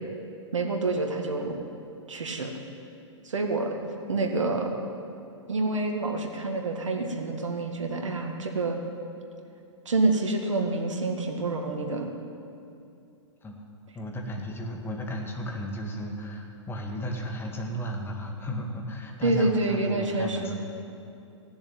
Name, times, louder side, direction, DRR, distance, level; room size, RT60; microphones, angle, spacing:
voice 1, 0.5-1.5 2.1-2.5 3.2-3.8 4.1-4.7 5.5-8.8 9.9-12.1 19.2-20.5, right 2 dB, 85° right, 3 dB, 2.0 m, -27 dB
voice 2, 13.9-20.5, equal, 15° left, 1 dB, 1.9 m, -34 dB
16.0 x 7.0 x 9.1 m, 2.7 s
hypercardioid pair, 120°, 16 cm